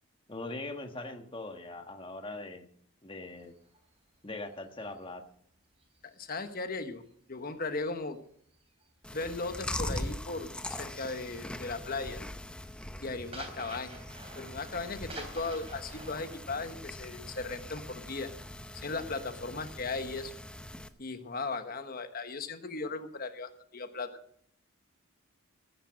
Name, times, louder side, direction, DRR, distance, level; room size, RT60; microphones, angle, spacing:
voice 1, 0.3-2.7 3.0-3.5 4.2-5.2, left 2 dB, 25° left, 5 dB, 1.3 m, -41 dB
sound 1, 3.2-7.1 7.4-10.8 11.1-11.5 11.8-18.2, right 2 dB, 25° right, 3.4 m, -51 dB
voice 2, 6.0-8.2 9.1-12.2 13.0-14.0 14.4-18.3 18.7-20.3 21.0-24.2, left 3 dB, 40° left, 8 dB, 1.1 m, -37 dB
Chewing mastication, 9.0-20.9, left 1 dB, 5° left, 0.7 m, -42 dB
15.0 x 10.0 x 6.3 m, 0.65 s
head